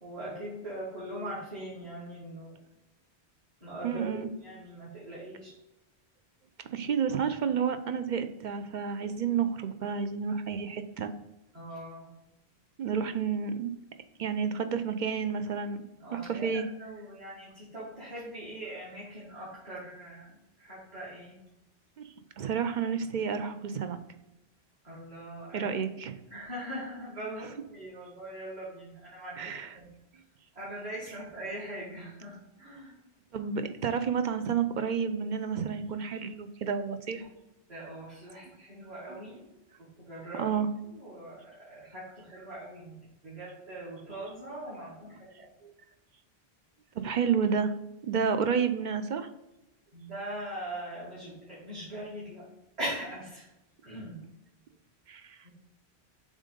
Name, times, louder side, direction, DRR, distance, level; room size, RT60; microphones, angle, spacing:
voice 1, 0.0-2.5 3.6-5.5 11.5-12.1 16.0-21.4 24.8-25.7 26.3-29.9 30.6-32.9 37.1-37.3 37.7-39.4 40.0-40.5 40.8-42.9 43.2-45.5 49.9-52.5 52.8-53.5 53.8-54.2 55.4-55.5, right 1 dB, 40° right, -9 dB, 2.0 m, -41 dB
voice 2, 3.8-4.3 6.7-11.1 12.8-13.7 14.2-15.8 16.1-16.7 22.0-22.1 22.4-24.0 25.5-26.2 29.4-29.7 33.3-37.2 39.1-39.2 40.4-40.7 45.6-45.7 47.0-47.7 48.0-49.3 55.1-55.4, right 6 dB, 55° right, 9 dB, 0.6 m, -30 dB
7.3 x 2.6 x 5.1 m, 0.93 s
omnidirectional pair, 1.1 m